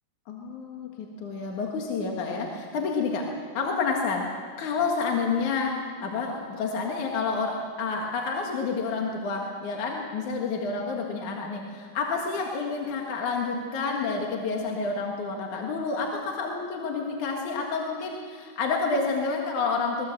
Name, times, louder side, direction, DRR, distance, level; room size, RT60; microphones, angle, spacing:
voice 1, 0.3-3.3 3.5-4.3 4.6-20.1, left 4 dB, 55° left, 0 dB, 2.6 m, -29 dB
22.0 x 20.0 x 7.6 m, 2.2 s
omnidirectional pair, 5.0 m